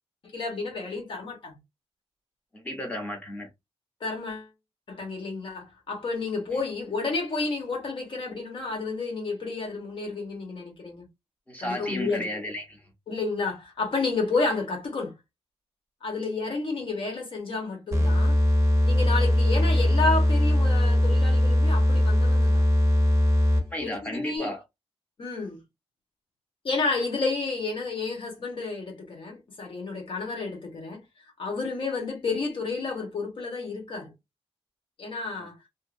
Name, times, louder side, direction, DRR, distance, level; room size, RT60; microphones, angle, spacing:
voice 1, 0.3-1.6 4.0-4.5 4.9-11.0 11.6-12.3 13.1-15.1 16.0-18.4 18.8-22.6 23.8-24.5 25.2-25.6 26.6-31.0 31.4-34.1 35.0-35.5, left 3 dB, 55° left, 1.2 m, -31 dB
voice 2, 2.5-3.5 11.5-12.8 23.5-24.6 35.3-35.5, left 1 dB, 15° left, 0.9 m, -34 dB
sound 1, 17.9-23.8, left 1 dB, 30° right, 0.6 m, -21 dB
2.7 x 2.5 x 2.5 m
wide cardioid pair, 175°, 11 cm